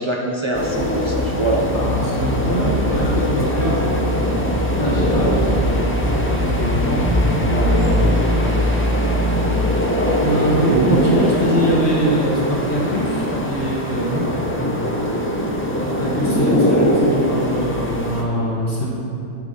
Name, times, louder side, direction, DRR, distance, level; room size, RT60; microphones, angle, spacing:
voice 1, 0.0-1.8 10.7-11.2 14.0-14.3, right 2 dB, 45° right, -1 dB, 0.3 m, -23 dB
sound 1, 0.5-18.2, equal, 15° left, 0.5 m, -21 dB
sound 2, 0.7-7.7, left 1 dB, 75° left, 1.2 m, -26 dB
voice 2, 1.7-8.9 10.2-14.7 15.8-18.9, equal, 50° left, -5 dB, 1.2 m, -23 dB
11.5 x 4.1 x 4.8 m, 2.9 s
omnidirectional pair, 1.3 m